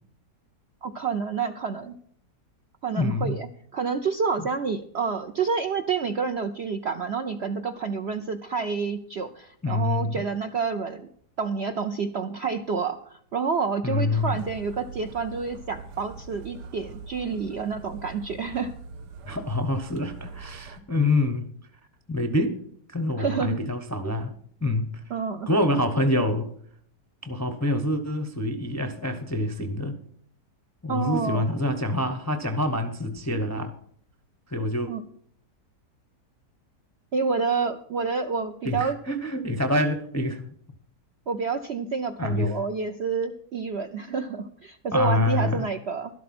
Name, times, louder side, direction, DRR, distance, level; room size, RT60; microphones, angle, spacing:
voice 1, 0.8-2.0 2.8-3.5 3.7-11.1 11.4-18.7 23.2-23.6 25.1-25.5 30.9-31.5 34.9-35.0 37.1-39.0 41.3-46.1, right 5 dB, 60° right, 0.7 m, -28 dB
voice 2, 3.0-3.3 4.4-4.5 9.6-10.2 13.8-14.4 19.2-21.5 22.1-22.6 22.9-24.3 24.6-24.9 25.5-26.5 27.2-29.9 30.8-33.7 34.5-34.9 38.6-40.5 42.2-42.5 44.9-45.6, left 1 dB, 20° left, 0.5 m, -26 dB
sound 1, 14.2-20.8, right 4 dB, 85° right, 1.5 m, -43 dB
12.0 x 12.0 x 4.3 m
omnidirectional pair, 1.8 m